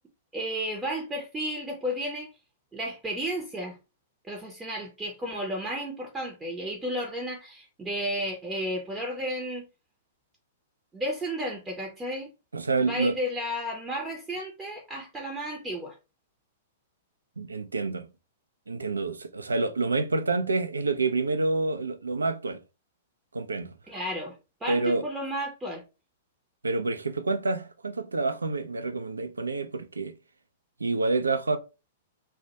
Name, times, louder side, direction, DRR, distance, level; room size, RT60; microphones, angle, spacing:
voice 1, 0.3-2.3 2.7-3.8 4.3-9.6 10.9-12.3 12.8-16.0 23.9-24.4 24.6-25.8, equal, 15° right, 0.6 m, -33 dB
voice 2, 12.5-13.2 17.4-18.1 18.7-22.6 23.3-23.7 24.7-25.1 26.6-30.1 30.8-31.6, right 3 dB, 80° right, 0.3 m, -28 dB
2.2 x 2.1 x 2.8 m
figure-of-eight pair, 105°, 0 cm